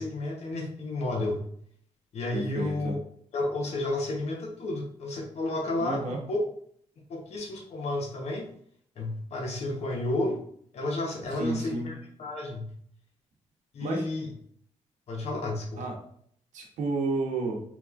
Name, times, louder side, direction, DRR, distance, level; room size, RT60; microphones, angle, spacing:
voice 1, 0.0-1.4 2.1-3.0 3.3-6.4 7.1-8.5 9.0-10.4 10.7-12.7 13.7-14.3 15.1-15.9, left 2 dB, 60° left, 0 dB, 0.8 m, -31 dB
voice 2, 2.3-2.9 5.8-6.2 11.3-11.9 13.8-14.1 15.8-15.9 16.5-17.6, right 2 dB, 90° right, 1 dB, 0.8 m, -31 dB
3.3 x 2.9 x 2.4 m, 0.63 s
cardioid pair, 100°, 12 cm